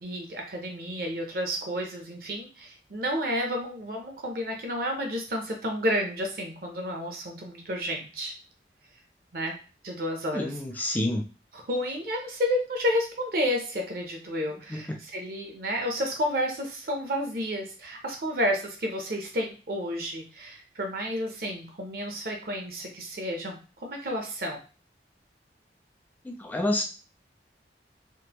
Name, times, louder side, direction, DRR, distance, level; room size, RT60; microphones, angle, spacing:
voice 1, 0.0-8.3 9.3-9.5 9.8-10.5 11.7-24.6, equal, 55° right, 2 dB, 0.6 m, -31 dB
voice 2, 10.3-11.2 14.7-15.0 26.2-26.8, left 1 dB, 10° left, 3 dB, 0.4 m, -29 dB
3.6 x 2.1 x 2.9 m, 0.34 s
head